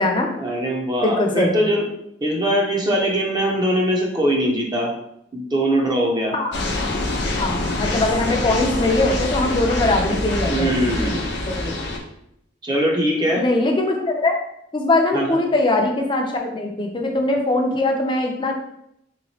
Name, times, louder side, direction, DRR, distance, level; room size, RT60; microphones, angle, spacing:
voice 1, 0.4-1.8 2.2-4.9 5.3-6.3 10.5-11.2 12.6-13.4 15.1-15.4, equal, 25° right, 0 dB, 0.6 m, -21 dB
voice 2, 1.0-1.6 6.3-6.9 7.4-11.7 13.4-14.4 14.7-18.5, left 2 dB, 25° left, 2 dB, 0.5 m, -21 dB
sound 1, 6.5-12.0, left 2 dB, 75° left, 0.6 m, -25 dB
3.6 x 3.0 x 2.8 m, 0.77 s
head